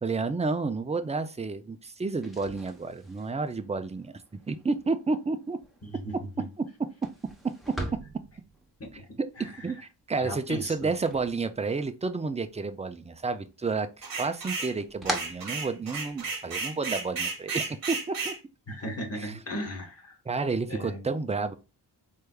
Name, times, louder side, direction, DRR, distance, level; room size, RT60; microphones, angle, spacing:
voice 1, 0.0-4.1 4.5-5.6 6.6-6.7 7.7-7.8 9.2-18.3 19.1-19.4 20.3-21.5, right 4 dB, 20° right, 0.3 m, -31 dB
sound 1, 2.2-12.1 12.4-13.3 13.6-16.3, right 1 dB, ahead, 0.8 m, -42 dB
voice 2, 5.8-6.1 8.9-9.0 9.4-9.5 10.2-10.9 18.7-20.2 20.7-21.0, equal, 35° left, 1.3 m, -36 dB
sound 2, 14.0-14.7 15.1-18.4, right 4 dB, 55° right, 1.0 m, -33 dB
4.5 x 3.3 x 2.2 m
wide cardioid pair, 135°, 42 cm